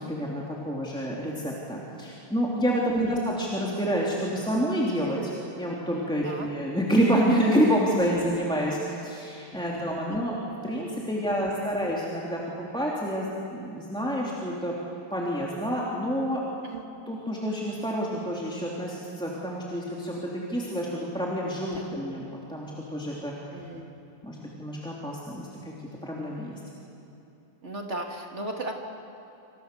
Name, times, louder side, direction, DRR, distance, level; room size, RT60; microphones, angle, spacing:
voice 1, 0.0-10.4 10.6-12.4 12.7-14.7 15.1-16.4 17.1-23.3 24.2-25.7 26.0-26.6, equal, ahead, -5 dB, 2.5 m, -28 dB
voice 2, 2.9-3.2 6.2-6.5 10.1-10.3 11.2-11.9 16.7-16.8 21.7-21.9 23.5-23.9 27.6-28.7, right 2 dB, 25° right, 1 dB, 1.6 m, -37 dB
27.5 x 27.0 x 6.9 m, 2.9 s
omnidirectional pair, 4.2 m